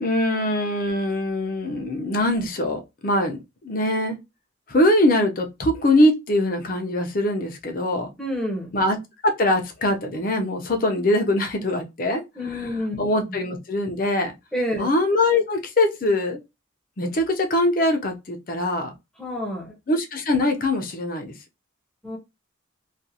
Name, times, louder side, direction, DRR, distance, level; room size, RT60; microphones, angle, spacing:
voice 1, 0.0-4.2 4.7-8.1 8.7-9.0 9.2-12.2 12.5-14.3 14.8-16.4 17.0-18.9 19.9-21.3, left 1 dB, 45° left, 0.5 m, -22 dB
voice 2, 8.2-8.7 12.4-13.0 14.5-14.9 19.2-19.7 22.0-22.2, equal, ahead, 0.7 m, -28 dB
2.4 x 2.3 x 2.7 m
head